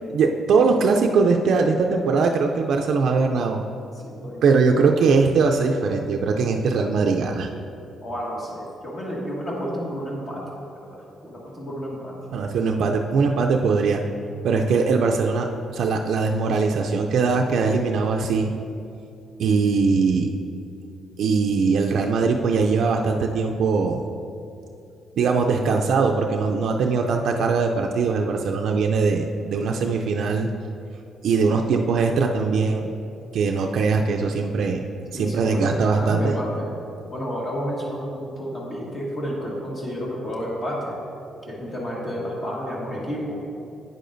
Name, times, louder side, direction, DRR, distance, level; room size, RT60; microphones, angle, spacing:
voice 1, 0.1-3.6 4.4-7.5 12.3-14.0 14.4-18.5 19.4-20.3 21.2-24.1 25.2-30.5 31.2-32.9 33.3-34.8 35.1-36.3, right 4 dB, 70° right, 3 dB, 0.4 m, -21 dB
voice 2, 4.0-4.6 8.0-10.5 10.8-12.1 35.1-36.7 37.1-41.0 41.5-43.4, equal, 40° left, -4 dB, 1.6 m, -31 dB
9.0 x 6.6 x 2.6 m, 2.6 s
cardioid pair, 90°, 0 cm